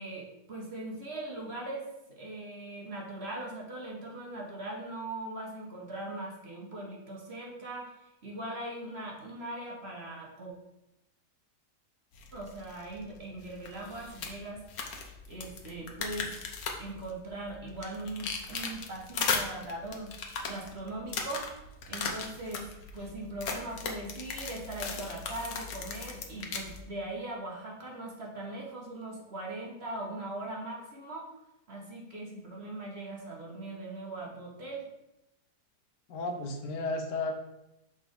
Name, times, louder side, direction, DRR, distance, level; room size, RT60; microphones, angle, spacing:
voice 1, 0.0-7.9 8.2-10.5 12.3-14.6 15.3-16.3 16.8-20.2 20.4-21.5 21.9-22.7 22.9-31.3 31.7-34.8, right 2 dB, 40° right, -1 dB, 1.3 m, -40 dB
sound 1, 12.1-26.8, left 5 dB, 65° left, 1.3 m, -38 dB
voice 2, 36.1-37.3, left 2 dB, 85° left, 4 dB, 1.5 m, -33 dB
6.1 x 4.2 x 5.1 m, 0.90 s
omnidirectional pair, 1.8 m